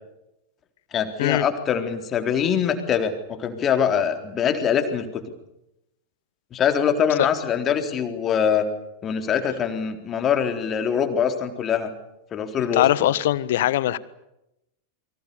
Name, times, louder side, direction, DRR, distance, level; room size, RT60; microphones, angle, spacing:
voice 1, 0.9-5.2 6.5-8.7 9.0-11.9 12.3-12.9, left 7 dB, 25° left, 6 dB, 3.9 m, -23 dB
voice 2, 12.7-14.0, left 13 dB, 55° left, 18 dB, 1.3 m, -21 dB
29.0 x 24.5 x 6.9 m, 0.87 s
figure-of-eight pair, 90°, 0 cm